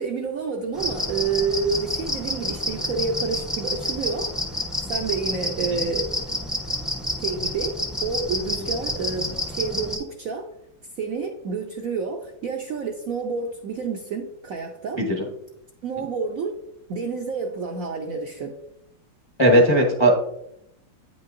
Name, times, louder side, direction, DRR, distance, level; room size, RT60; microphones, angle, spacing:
voice 1, 0.0-4.3 4.9-6.2 7.2-10.5 11.0-15.0 15.8-16.6 16.9-18.6, right 4 dB, 70° right, 1 dB, 0.8 m, -29 dB
sound 1, 0.7-10.0, left 1 dB, ahead, 0.3 m, -29 dB
voice 2, 15.0-15.3 19.4-20.2, equal, 20° left, 0 dB, 0.7 m, -17 dB
8.8 x 5.6 x 2.6 m, 0.77 s
omnidirectional pair, 2.1 m